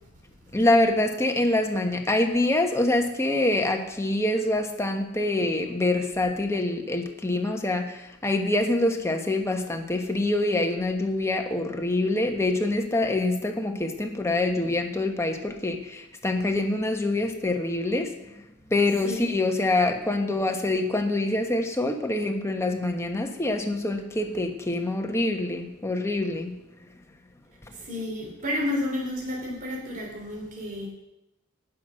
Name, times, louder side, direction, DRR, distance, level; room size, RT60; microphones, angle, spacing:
voice 1, 0.5-18.2 18.7-26.5, left 2 dB, 10° left, 4 dB, 1.2 m, -25 dB
voice 2, 27.7-30.9, left 1 dB, 40° right, -2 dB, 3.5 m, -31 dB
18.0 x 6.1 x 6.5 m, 0.90 s
head